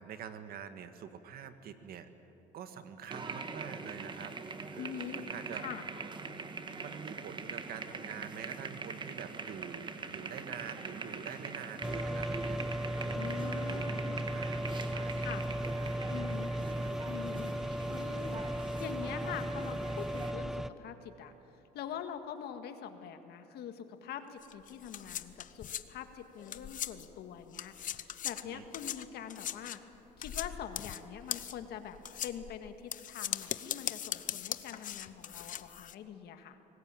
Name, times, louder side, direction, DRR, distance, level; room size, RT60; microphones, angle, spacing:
voice 1, 0.0-2.1 2.5-4.4 4.7-5.7 6.8-12.6 13.0-13.8 14.3-15.3 15.6-16.0 16.5-17.1 28.5-28.6, right 8 dB, 65° right, 9 dB, 1.7 m, -46 dB
sound 1, 3.1-20.3, right 4 dB, 30° right, 1.6 m, -43 dB
voice 2, 4.8-5.2 5.5-5.8 13.1-14.2 15.1-15.4 16.1-16.5 17.1-17.5 17.9-21.3 21.7-29.8 30.2-36.6, left 8 dB, 75° left, 7 dB, 1.9 m, -44 dB
sound 2, 11.8-20.7, right 1 dB, ahead, 0.7 m, -36 dB
sound 3, 24.4-27.2 27.5-35.9, left 10 dB, 50° left, 0.9 m, -40 dB
24.0 x 20.0 x 9.1 m, 2.9 s
cardioid pair, 110°, 17 cm